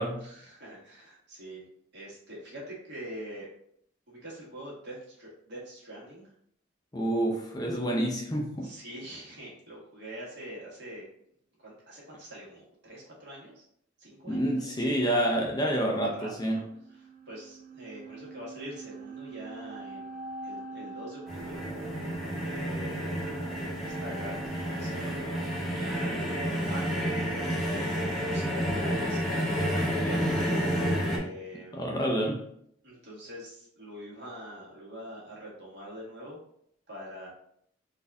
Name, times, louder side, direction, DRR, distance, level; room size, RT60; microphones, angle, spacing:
voice 1, 0.2-1.6 1.9-3.5 4.1-6.3 8.6-11.0 11.6-13.6 14.0-15.0 16.2-16.6 16.9-21.6 22.4-30.8 31.0-31.8 32.8-36.4 36.9-37.3, equal, 60° right, 1.7 m, -44 dB
voice 2, 6.9-8.7 14.2-16.6 31.7-32.4, right 1 dB, 20° left, 0.5 m, -28 dB
sound 1, 16.5-27.6, right 5 dB, 40° right, 0.3 m, -44 dB
sound 2, 21.3-31.2, equal, ahead, 0.9 m, -30 dB
4.1 x 2.6 x 3.5 m
head